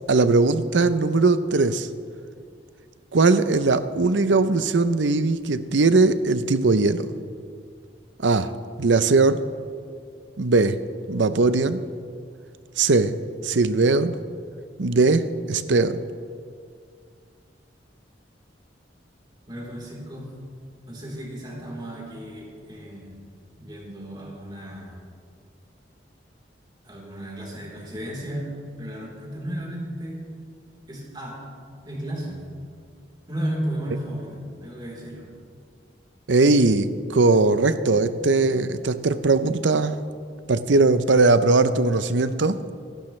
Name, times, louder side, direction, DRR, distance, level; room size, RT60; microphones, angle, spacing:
voice 1, 0.1-1.9 3.1-7.1 8.2-8.5 8.8-9.4 10.4-10.8 11.1-11.8 12.8-13.2 13.4-14.2 14.8-16.0 36.3-40.0 40.5-42.6, right 3 dB, 80° right, 12 dB, 0.7 m, -20 dB
voice 2, 19.5-20.3 20.9-23.1 23.6-25.0 26.8-28.5 28.8-30.3 30.9-31.4 31.8-32.4 33.3-35.3, right 1 dB, 25° right, -4 dB, 3.7 m, -34 dB
26.5 x 12.0 x 3.3 m, 2.2 s
head